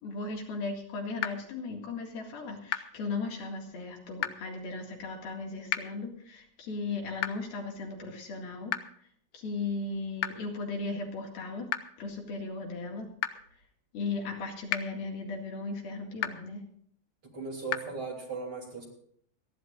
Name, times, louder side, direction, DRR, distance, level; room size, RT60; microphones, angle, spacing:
voice 1, 0.0-8.7 9.3-11.7 12.0-13.1 13.9-16.6, left 3 dB, 65° left, 1 dB, 3.8 m, -36 dB
sound 1, 1.2-1.3 2.7-2.8 4.2-4.3 5.7-5.8 7.2-7.3 8.7-8.8 10.2-10.3 11.7-11.8 13.2-13.3 14.7-14.8 16.2-16.3 17.7-17.8, left 14 dB, 85° left, 2.8 m, -29 dB
voice 2, 17.2-18.9, right 4 dB, 35° right, -2 dB, 3.7 m, -37 dB
29.5 x 11.0 x 2.5 m, 0.66 s
omnidirectional pair, 4.7 m